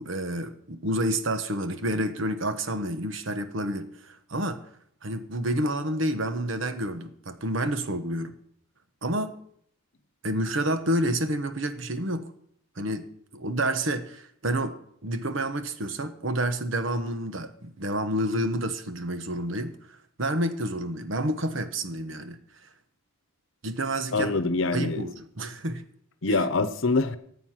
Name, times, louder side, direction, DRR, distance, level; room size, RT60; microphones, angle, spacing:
voice 1, 0.0-4.6 5.0-8.3 9.0-9.4 10.2-12.3 12.8-13.0 13.3-22.4 23.6-24.4 24.7-25.8 26.3-26.4, right 1 dB, 70° right, 9 dB, 1.1 m, -29 dB
voice 2, 24.1-25.1 26.2-27.2, left 3 dB, 65° left, 12 dB, 0.9 m, -25 dB
14.5 x 8.4 x 5.8 m, 0.67 s
head